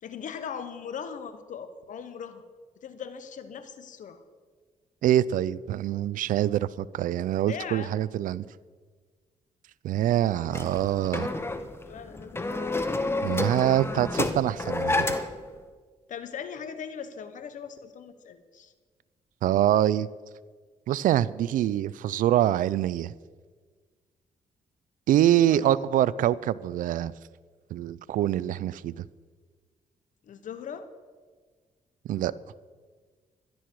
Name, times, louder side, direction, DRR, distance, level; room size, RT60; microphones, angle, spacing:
voice 1, 0.0-2.4 2.8-4.2 7.5-7.9 10.2-10.8 11.8-12.8 16.1-18.7 25.5-25.7 30.3-30.9, left 7 dB, 70° left, 11 dB, 1.3 m, -40 dB
voice 2, 5.0-8.4 9.8-11.3 13.2-15.1 19.4-20.1 20.9-23.1 25.1-27.1 27.7-29.1 32.1-32.3, right 12 dB, 80° right, 19 dB, 0.5 m, -25 dB
sound 1, 10.5-15.5, left 2 dB, 20° left, 1.2 m, -29 dB
16.5 x 12.0 x 4.8 m, 1.5 s
cardioid pair, 70°, 14 cm